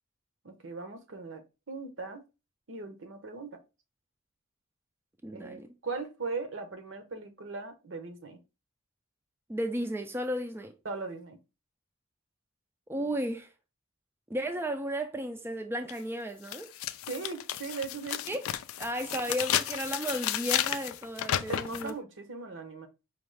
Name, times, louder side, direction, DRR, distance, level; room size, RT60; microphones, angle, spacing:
voice 1, 0.4-2.2 2.7-3.6 5.3-8.4 10.8-11.4 17.1-18.2 21.5-22.9, right 4 dB, 65° right, 0.8 m, -39 dB
voice 2, 5.2-5.7 9.5-10.7 12.9-13.5 14.3-16.7 18.3-18.4 18.8-21.9, equal, 10° right, 0.3 m, -34 dB
sound 1, 15.9-16.0 16.5-21.9, left 11 dB, 90° left, 0.3 m, -32 dB
5.1 x 2.3 x 3.2 m
head